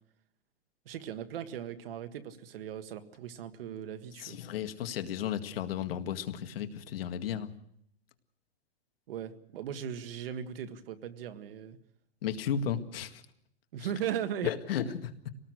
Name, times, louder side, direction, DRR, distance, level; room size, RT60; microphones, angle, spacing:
voice 1, 0.9-4.4 9.1-11.8 13.7-14.5, right 9 dB, 60° right, 9 dB, 1.7 m, -38 dB
voice 2, 4.2-7.5 12.2-13.2 14.4-15.3, left 9 dB, 65° left, 8 dB, 2.0 m, -34 dB
25.0 x 19.0 x 6.4 m, 0.73 s
supercardioid pair, 165°, 31 cm